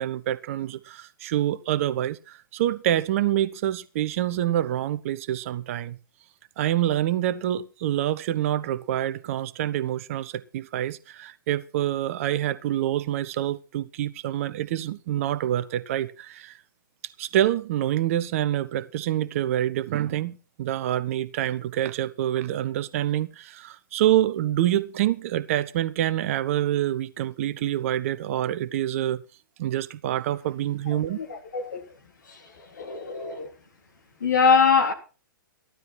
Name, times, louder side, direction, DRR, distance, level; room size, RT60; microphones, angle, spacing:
voice 1, 0.0-6.0 6.6-16.5 17.2-29.2 29.6-31.2, right 12 dB, 40° right, 0.8 m, -26 dB
voice 2, 30.9-31.8 32.3-32.4 32.8-33.5 34.2-34.9, left 5 dB, 60° left, 3.5 m, -23 dB
15.5 x 12.0 x 4.4 m
figure-of-eight pair, 115°, 11 cm